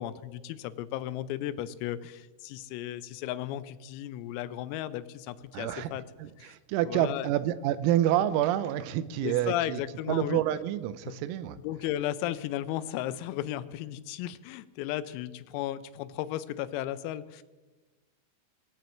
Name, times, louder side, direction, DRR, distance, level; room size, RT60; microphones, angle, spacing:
voice 1, 0.0-6.0 6.4-6.5 6.9-7.3 9.2-10.4 11.1-11.2 11.6-17.4, left 13 dB, 85° left, 15 dB, 3.4 m, -35 dB
voice 2, 5.5-5.9 6.2-9.8 10.1-11.6, right 12 dB, 85° right, 14 dB, 3.4 m, -28 dB
20.5 x 15.0 x 4.5 m, 1.2 s
omnidirectional pair, 6.0 m